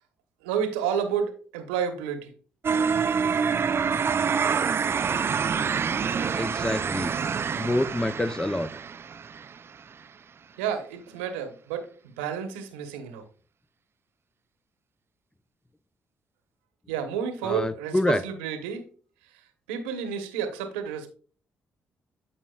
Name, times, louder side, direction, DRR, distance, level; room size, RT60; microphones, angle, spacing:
voice 1, 0.4-2.3 10.6-13.2 16.9-18.8 19.7-21.1, right 7 dB, 90° right, 7 dB, 1.0 m, -30 dB
sound 1, 2.6-9.6, right 6 dB, 45° right, 0.4 m, -26 dB
voice 2, 6.4-7.1 7.6-8.7 17.4-18.2, left 1 dB, 10° left, 13 dB, 0.5 m, -26 dB
12.5 x 4.3 x 2.3 m, 0.41 s
hypercardioid pair, 45°, 6 cm